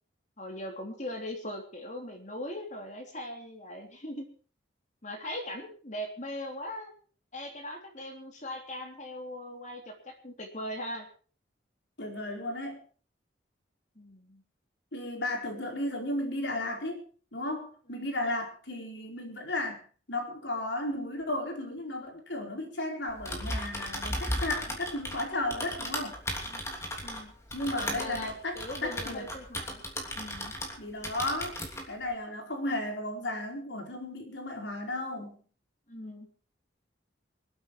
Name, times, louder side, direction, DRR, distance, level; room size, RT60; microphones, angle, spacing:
voice 1, 0.4-4.3 5.0-6.9 7.3-11.1 14.0-14.4 17.9-18.1 26.4-26.6 27.0-27.3 27.7-28.3 28.6-29.8 30.2-30.5 35.9-36.3, left 1 dB, 40° left, 3 dB, 3.4 m, -40 dB
voice 2, 12.0-12.8 14.9-17.0 17.3-26.2 27.5-29.3 30.8-31.6 31.9-35.4, left 1 dB, 70° left, 2 dB, 4.6 m, -34 dB
Typing, 23.1-30.8 31.0-31.9, left 1 dB, 15° left, 3.0 m, -36 dB
26.0 x 8.7 x 4.7 m, 0.41 s
head